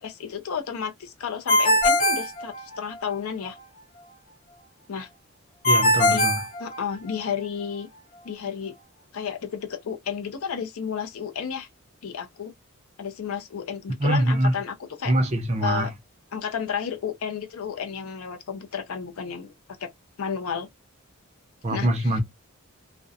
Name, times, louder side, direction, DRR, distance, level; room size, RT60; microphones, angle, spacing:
voice 1, 0.0-3.6 4.9-5.1 6.1-6.3 6.6-7.9 8.2-8.7 9.1-11.7 12.0-12.5 13.0-15.1 15.6-15.9 16.3-19.5 19.8-19.9 20.2-20.7 21.7-22.2, left 7 dB, 75° left, 0.5 m, -32 dB
Ringtone, 1.5-3.1 5.6-7.3, left 1 dB, 35° left, 0.7 m, -21 dB
voice 2, 5.7-6.4 14.0-14.5 15.1-15.9 21.6-22.2, right 1 dB, 30° right, 0.5 m, -23 dB
2.5 x 2.1 x 2.5 m
head